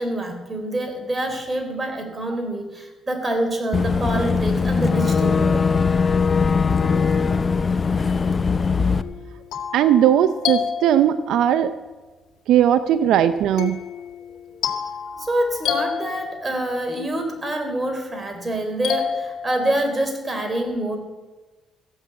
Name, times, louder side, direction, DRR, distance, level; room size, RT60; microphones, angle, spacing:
voice 1, 0.0-5.7 14.6-14.7 15.2-21.0, right 1 dB, 25° right, 5 dB, 3.6 m, -26 dB
Boat Water vehicle / Engine, 3.7-9.0, left 5 dB, 30° left, 0.7 m, -20 dB
sound 1, 9.0-11.5 13.6-16.8 18.8-20.0, left 8 dB, 85° left, 2.0 m, -29 dB
voice 2, 9.7-11.7 12.5-13.8, right 10 dB, 85° right, 11 dB, 0.5 m, -18 dB
15.0 x 8.1 x 8.6 m, 1.2 s
cardioid pair, 90°, 0 cm